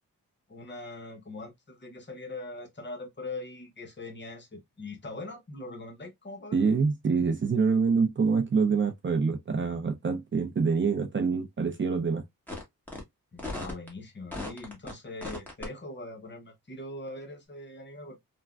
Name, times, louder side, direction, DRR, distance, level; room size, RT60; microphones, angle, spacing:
voice 1, 0.5-6.6 13.3-18.2, left 2 dB, 35° left, 0.8 m, -41 dB
voice 2, 6.5-12.2, right 5 dB, 35° right, 0.5 m, -26 dB
sound 1, 12.5-12.6 12.9-13.0 13.4-13.9 14.3-14.9 15.2-15.7, left 2 dB, 5° left, 1.1 m, -36 dB
3.3 x 2.1 x 2.3 m
wide cardioid pair, 100°, 33 cm